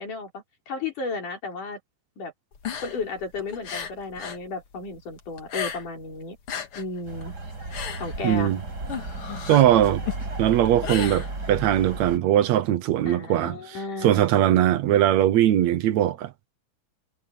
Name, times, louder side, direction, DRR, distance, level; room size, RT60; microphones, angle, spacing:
voice 1, 0.0-1.8 2.2-2.3 2.8-6.4 6.8-7.3 8.0-8.5 13.1-14.3, left 3 dB, 80° left, 6.3 m, -33 dB
sound 1, 2.5-4.5 4.7-6.1 6.3-11.8, left 8 dB, 50° left, 2.4 m, -35 dB
sound 2, 7.1-12.2, right 2 dB, 30° right, 6.2 m, -34 dB
voice 2, 8.2-8.6 9.5-10.0 10.4-13.5 14.0-16.3, right 12 dB, 70° right, 1.9 m, -20 dB
omnidirectional pair, 3.6 m